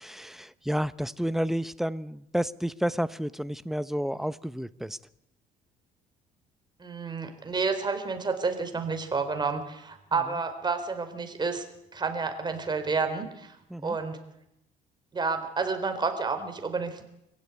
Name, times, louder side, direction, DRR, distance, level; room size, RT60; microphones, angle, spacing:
voice 1, 0.0-5.0 13.7-14.0, equal, ahead, 15 dB, 0.8 m, -30 dB
voice 2, 6.8-11.6 11.9-13.3 13.8-14.2 15.1-17.0, right 4 dB, 25° right, 7 dB, 3.9 m, -30 dB
25.0 x 16.0 x 9.6 m, 0.83 s
cardioid pair, 110°, 17 cm